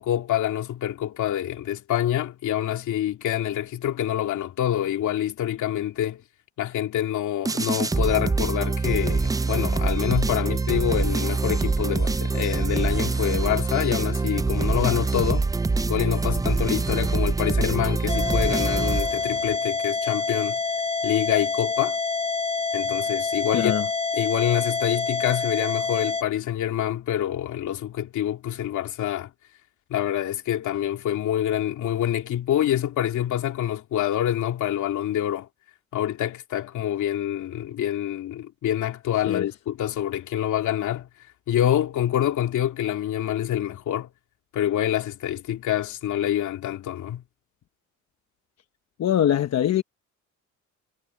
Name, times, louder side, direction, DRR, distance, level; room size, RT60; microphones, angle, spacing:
voice 1, 0.0-6.2 6.6-15.5 15.9-20.6 21.0-22.0 22.7-23.7 24.1-29.3 29.9-35.5 35.9-41.1 41.5-44.1 44.5-47.2, left 11 dB, 75° left, 2.6 m, -26 dB
sound 1, 7.5-19.6, right 3 dB, 10° right, 0.4 m, -25 dB
sound 2, 18.1-26.2, left 4 dB, 20° left, 1.2 m, -27 dB
voice 2, 23.5-23.9 39.3-39.5 49.0-49.8, left 10 dB, 60° left, 1.1 m, -22 dB
cardioid pair, 90°, 30 cm